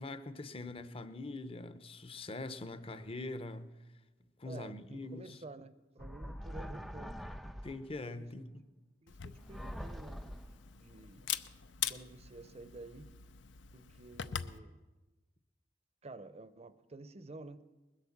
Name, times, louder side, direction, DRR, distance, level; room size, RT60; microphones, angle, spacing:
voice 1, 0.0-3.7 4.4-5.4 7.6-8.6, left 2 dB, 30° left, 0.8 m, -43 dB
voice 2, 4.4-7.3 8.2-8.3 9.0-11.3 11.9-13.1 13.7-14.8 16.0-17.6, right 2 dB, 35° right, 0.7 m, -51 dB
sound 1, 6.0-8.0 9.4-10.7, equal, ahead, 0.4 m, -44 dB
Camera, 9.1-14.6, left 9 dB, 80° left, 0.6 m, -43 dB
20.5 x 8.2 x 7.3 m
head